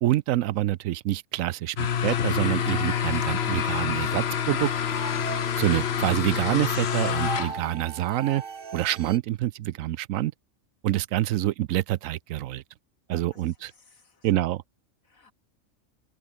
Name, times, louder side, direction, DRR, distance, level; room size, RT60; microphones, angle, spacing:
voice 1, 0.0-4.7 5.6-8.4 8.7-10.3 10.8-12.6 13.1-13.7 14.2-14.6, right 14 dB, 80° right, 1.0 m, -26 dB
sound 1, 1.8-7.7, left 8 dB, 55° left, 1.1 m, -27 dB
sound 2, 2.4-9.2, right 6 dB, 45° right, 1.2 m, -40 dB
voice 2, 13.1-14.3 15.1-15.3, left 4 dB, 85° left, 3.4 m, -56 dB
open air
omnidirectional pair, 1.4 m